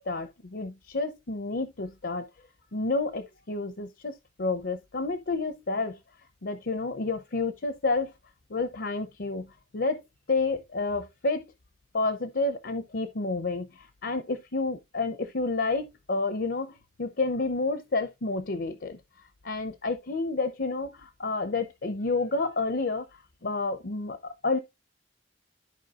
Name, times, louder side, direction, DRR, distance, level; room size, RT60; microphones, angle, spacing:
voice 1, 0.1-2.3 2.7-6.0 6.4-8.1 8.5-10.0 10.3-11.5 11.9-19.0 19.4-24.6, left 3 dB, 65° left, 0.7 m, -30 dB
13.5 x 4.7 x 2.4 m
head